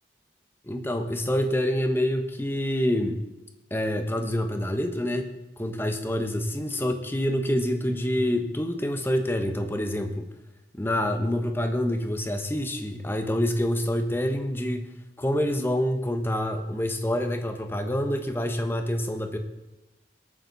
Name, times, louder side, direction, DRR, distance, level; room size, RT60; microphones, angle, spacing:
voice 1, 0.7-3.2 3.7-10.3 10.7-14.9 15.2-19.4, left 1 dB, 10° left, 6 dB, 1.2 m, -27 dB
21.0 x 9.0 x 4.1 m, 1.0 s
head